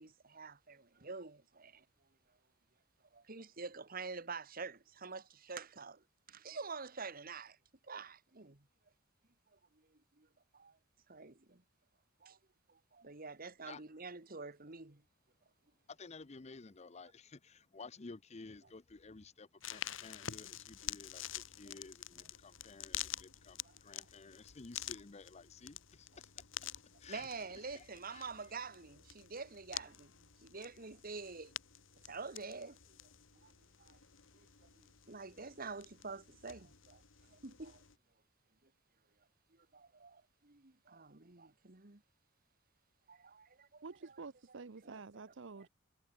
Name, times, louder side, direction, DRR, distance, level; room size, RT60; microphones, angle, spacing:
voice 1, 0.0-1.8 3.1-7.6 7.8-8.7 9.9-10.3 10.5-10.8 11.1-11.6 12.2-12.4 12.7-15.0 21.7-21.8 24.0-24.1 27.1-31.5 32.0-32.8 33.4-33.5 33.8-34.0 34.3-34.5 34.8-37.0 37.3-37.8 38.6-38.7 39.5-42.0 43.1-43.8 44.9-45.0, right 4 dB, 45° right, 1.8 m, -47 dB
voice 2, 15.9-28.3, left 4 dB, 35° left, 0.7 m, -54 dB
sound 1, 19.6-38.0, left 11 dB, 70° left, 2.0 m, -48 dB
voice 3, 43.8-45.7, right 4 dB, 65° right, 0.8 m, -49 dB
head